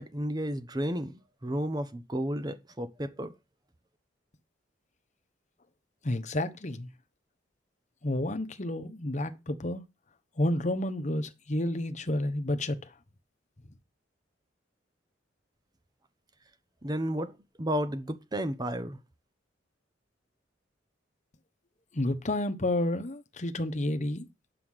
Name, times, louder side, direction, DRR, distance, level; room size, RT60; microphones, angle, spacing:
voice 1, 0.0-3.3 16.8-19.0, equal, 20° right, 1.0 m, -32 dB
voice 2, 6.0-6.9 8.0-9.8 10.4-12.8 21.9-24.2, left 1 dB, 40° left, 1.1 m, -30 dB
8.9 x 5.7 x 6.4 m
head